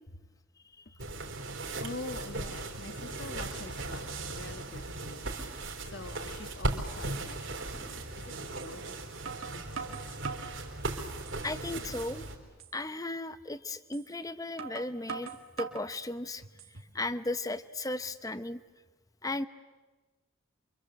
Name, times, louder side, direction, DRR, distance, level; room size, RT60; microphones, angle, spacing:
sound 1, 1.0-12.4, right 2 dB, 65° right, 3.9 m, -37 dB
voice 1, 1.8-5.4 5.8-10.0 10.5-10.6 10.9-11.0 11.4-11.5, left 3 dB, 55° left, 8 dB, 1.5 m, -46 dB
sound 2, 7.3-7.4 8.6-8.7 9.3-10.6 11.1-11.6 12.0-12.1 12.6-12.8 13.9-14.1 14.6-15.9 16.4-17.0, right 5 dB, 80° right, 2.3 m, -42 dB
voice 2, 11.4-12.3 12.7-16.4 16.9-18.6 19.2-19.5, left 2 dB, 15° left, 13 dB, 0.8 m, -35 dB
28.5 x 25.0 x 7.9 m, 1.2 s
head